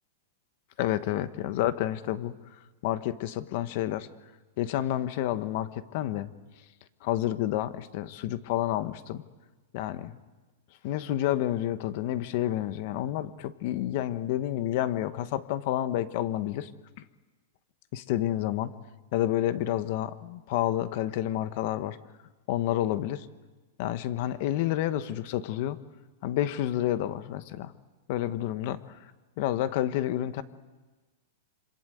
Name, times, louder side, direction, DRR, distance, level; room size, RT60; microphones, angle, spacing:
voice 1, 0.8-2.3 2.8-4.1 4.6-6.3 7.0-9.2 9.7-10.2 10.8-16.7 17.9-18.7 19.1-22.0 22.5-23.3 23.8-25.8 26.2-27.7 28.1-29.0 29.4-30.4, left 13 dB, 40° left, 13 dB, 1.2 m, -29 dB
27.0 x 26.0 x 7.9 m, 1.2 s
supercardioid pair, 175°, 0 cm